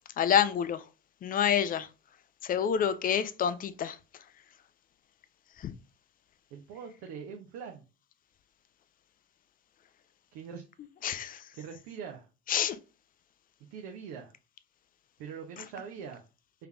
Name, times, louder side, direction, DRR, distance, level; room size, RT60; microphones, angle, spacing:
voice 1, 0.2-0.9 1.2-1.9 2.4-4.0 5.6-5.7 11.0-11.5 12.5-12.8, left 8 dB, 25° left, 0.4 m, -28 dB
voice 2, 6.5-7.8 10.3-10.6 11.5-12.3 13.7-14.3 15.2-16.2, right 6 dB, 50° right, 0.8 m, -43 dB
5.6 x 3.4 x 2.3 m
figure-of-eight pair, 65°, 35 cm